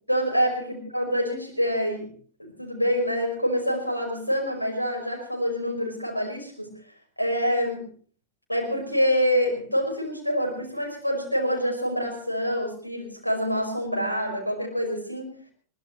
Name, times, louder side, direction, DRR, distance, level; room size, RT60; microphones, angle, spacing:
voice 1, 0.1-2.1 2.4-6.7 7.2-7.9 8.5-15.3, equal, 90° left, 2 dB, 5.4 m, -26 dB
22.5 x 20.0 x 3.2 m, 0.42 s
figure-of-eight pair, 90°, 0 cm